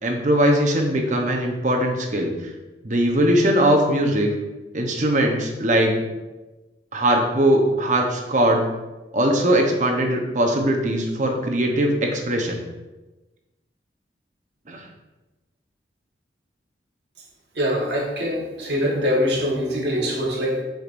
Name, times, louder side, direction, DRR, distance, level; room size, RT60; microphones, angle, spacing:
voice 1, 0.0-2.3 2.8-4.3 4.7-6.0 6.9-8.6 9.1-12.6 14.7-14.8, right 1 dB, 45° right, 2 dB, 0.9 m, -20 dB
voice 2, 17.6-20.6, equal, 70° right, -2 dB, 1.5 m, -23 dB
8.0 x 5.1 x 2.6 m, 1.1 s
head